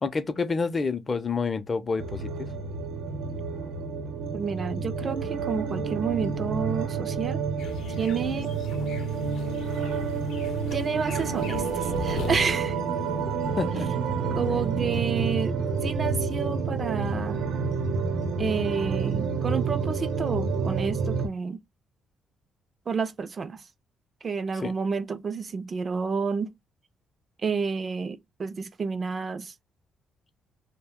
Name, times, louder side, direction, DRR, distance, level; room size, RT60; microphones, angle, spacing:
voice 1, 0.0-2.5 13.6-13.9 24.6-24.7, left 4 dB, 35° left, 0.5 m, -28 dB
sound 1, 2.0-21.3, right 5 dB, 85° right, 0.8 m, -29 dB
voice 2, 4.3-7.4 8.0-8.5 10.7-12.8 14.3-15.6 15.8-17.4 18.4-21.6 22.9-23.6 24.2-26.5 27.4-29.5, right 5 dB, 40° right, 0.3 m, -30 dB
sound 2, 7.6-12.6, left 6 dB, 80° left, 0.6 m, -40 dB
2.4 x 2.1 x 3.6 m
cardioid pair, 90°, 0 cm